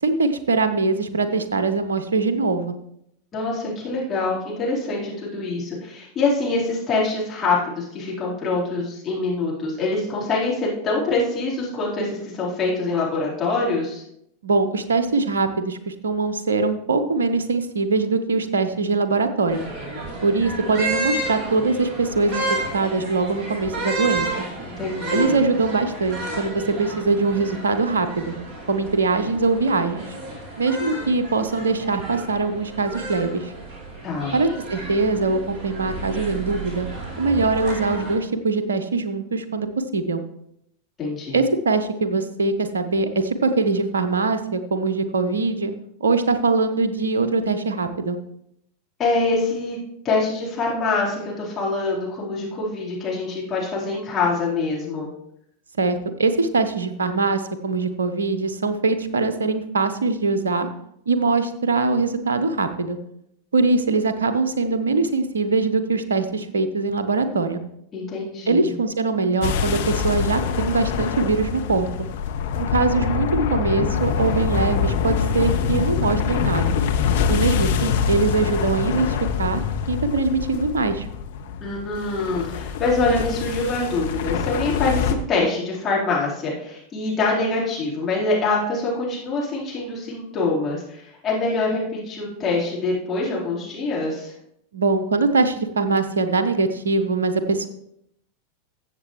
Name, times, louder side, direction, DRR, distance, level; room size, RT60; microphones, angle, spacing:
voice 1, 0.0-2.7 14.4-19.6 20.2-22.4 22.7-24.3 25.1-28.3 28.7-30.1 30.6-33.5 34.3-36.9 37.2-39.7 39.9-40.2 41.3-45.7 46.0-48.2 55.8-60.7 61.1-63.0 63.5-67.6 68.5-72.1 72.6-76.8 77.3-79.6 79.9-81.1 94.7-97.7, right 3 dB, 70° right, 10 dB, 0.8 m, -22 dB
voice 2, 3.3-14.0 24.6-25.4 34.0-34.3 41.0-41.4 49.0-49.8 50.0-55.1 67.9-68.7 81.6-94.3, left 3 dB, 25° left, -6 dB, 4.0 m, -25 dB
sound 1, 19.5-38.1, right 2 dB, 25° right, 3.4 m, -32 dB
sound 2, 69.4-85.1, left 7 dB, 55° left, 0.8 m, -25 dB
14.0 x 7.5 x 3.1 m, 0.76 s
figure-of-eight pair, 90°, 0 cm